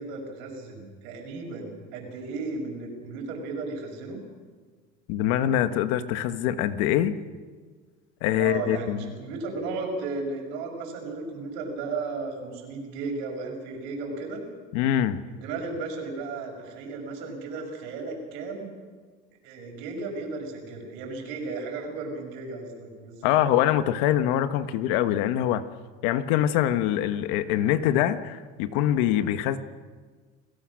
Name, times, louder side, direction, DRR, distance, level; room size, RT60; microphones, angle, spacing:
voice 1, 0.0-4.2 8.4-14.4 15.3-18.7 19.4-23.4, right 3 dB, 75° right, 2 dB, 6.7 m, -35 dB
voice 2, 5.1-7.2 8.2-9.1 14.7-15.2 23.2-25.6 26.0-29.6, left 11 dB, 80° left, 11 dB, 1.3 m, -24 dB
30.0 x 18.5 x 6.4 m, 1.5 s
cardioid pair, 170°, 20 cm